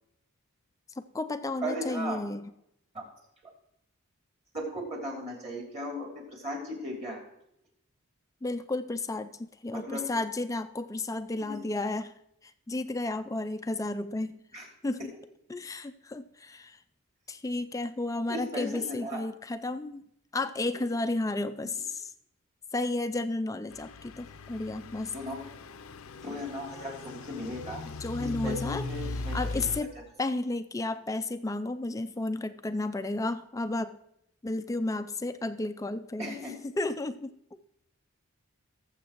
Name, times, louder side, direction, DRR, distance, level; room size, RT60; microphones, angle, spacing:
voice 1, 1.0-2.5 8.4-12.1 12.4-14.4 14.8-15.1 15.5-16.8 17.3-20.0 20.3-22.1 22.7-25.2 27.9-29.9 30.2-34.0 34.4-37.3, left 2 dB, 15° left, 11 dB, 0.3 m, -33 dB
voice 2, 1.6-2.2 2.9-3.0 4.5-7.2 9.7-10.0 11.4-11.6 14.5-14.6 18.3-19.2 20.7-20.8 24.8-24.9 25.1-25.5 26.2-27.8 28.2-29.4 36.2-36.6, equal, 30° right, 0 dB, 2.6 m, -37 dB
Truck / Idling, 23.7-29.8, left 3 dB, 70° left, 0.5 m, -39 dB
18.5 x 7.4 x 3.0 m, 0.78 s
head